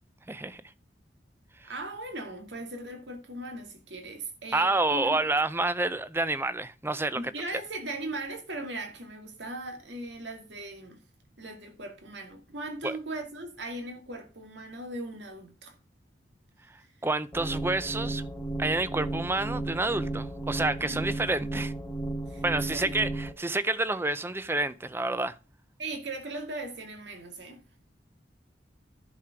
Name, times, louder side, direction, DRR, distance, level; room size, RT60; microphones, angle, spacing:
voice 1, 0.3-0.6 1.6-1.7 4.5-7.2 12.8-13.0 17.0-18.2 18.6-21.7 22.4-25.4, right 2 dB, 15° right, 0.5 m, -28 dB
voice 2, 1.7-5.2 7.1-11.0 11.4-15.7 20.8-21.0 22.3-22.4 22.7-22.9 25.8-27.6, right 2 dB, 90° right, 2.1 m, -38 dB
sound 1, 17.3-23.3, right 2 dB, 15° left, 1.3 m, -34 dB
11.0 x 5.1 x 5.9 m
head